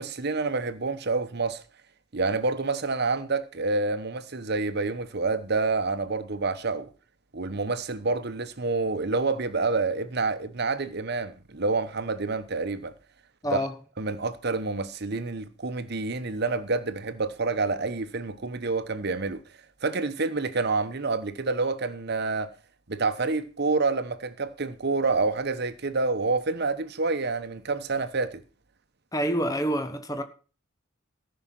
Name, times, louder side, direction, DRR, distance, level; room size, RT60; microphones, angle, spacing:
voice 1, 0.0-1.6 2.1-6.9 7.3-12.9 13.5-13.6 14.0-19.4 19.8-22.5 22.9-28.4, right 3 dB, 50° right, 1.0 m, -28 dB
voice 2, 13.4-13.8 29.1-30.2, equal, 15° left, 1.2 m, -27 dB
14.0 x 5.8 x 7.5 m
head